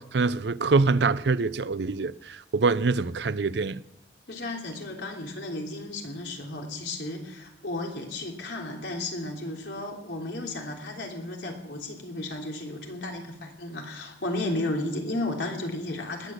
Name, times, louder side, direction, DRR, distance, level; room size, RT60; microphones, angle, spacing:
voice 1, 0.0-3.8, right 4 dB, 75° right, 0.6 m, -25 dB
voice 2, 4.3-16.3, left 2 dB, 85° left, 3.4 m, -33 dB
20.0 x 8.3 x 7.9 m
head